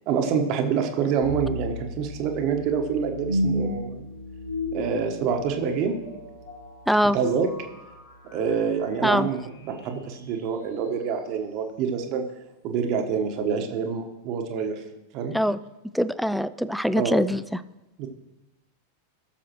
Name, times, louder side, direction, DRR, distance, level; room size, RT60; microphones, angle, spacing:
voice 1, 0.1-4.1 4.7-6.0 7.1-7.5 8.3-12.2 12.6-14.8 15.1-15.3 16.9-17.2 18.0-18.1, right 6 dB, 40° right, 5 dB, 1.3 m, -26 dB
sound 1, 1.2-10.3, left 1 dB, 75° left, 4.1 m, -34 dB
voice 2, 6.9-7.2 9.0-9.3 15.3-15.6 15.9-17.6, equal, ahead, 14 dB, 0.4 m, -23 dB
17.5 x 6.8 x 3.1 m, 0.99 s
figure-of-eight pair, 90°, 0 cm